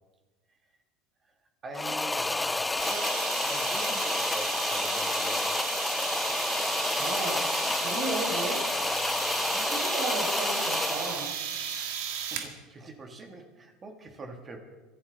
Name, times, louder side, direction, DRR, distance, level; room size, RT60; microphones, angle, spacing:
voice 1, 1.6-5.6 12.2-14.6, right 3 dB, 25° right, 4 dB, 2.0 m, -44 dB
sound 1, 1.7-11.3, left 2 dB, 10° left, 0.5 m, -29 dB
sound 2, 2.8-12.5, right 8 dB, 85° right, 1.9 m, -35 dB
voice 2, 7.0-7.5 7.8-8.6 9.5-11.3, right 3 dB, 65° right, -4 dB, 4.6 m, -34 dB
24.0 x 12.0 x 4.1 m, 1.2 s
supercardioid pair, 135°, 0 cm